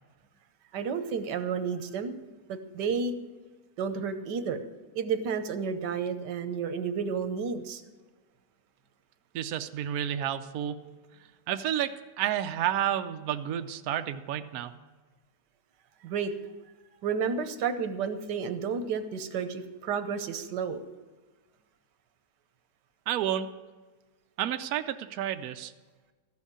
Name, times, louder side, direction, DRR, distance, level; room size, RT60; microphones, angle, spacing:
voice 1, 0.7-2.1 2.5-3.1 3.8-4.6 4.9-7.8 16.0-16.3 17.0-20.8, right 6 dB, 90° right, 10 dB, 1.5 m, -31 dB
voice 2, 9.3-10.8 11.5-14.7 23.1-23.5 24.4-25.7, right 10 dB, 70° right, 8 dB, 1.0 m, -30 dB
13.5 x 6.4 x 8.6 m, 1.3 s
omnidirectional pair, 1.8 m